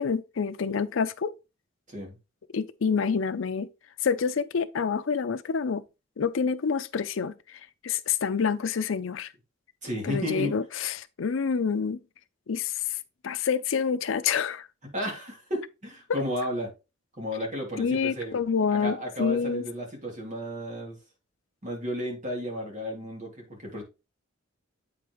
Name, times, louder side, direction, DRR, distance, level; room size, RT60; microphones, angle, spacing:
voice 1, 0.0-1.3 2.5-3.7 4.0-5.8 6.2-9.3 10.0-12.0 12.5-13.0 13.2-14.7 17.8-19.6, left 6 dB, 85° left, 0.5 m, -27 dB
voice 2, 9.8-10.5 14.9-16.7 17.2-18.4 18.8-21.0 21.6-23.8, equal, 40° right, 2.8 m, -33 dB
8.5 x 5.2 x 3.1 m
head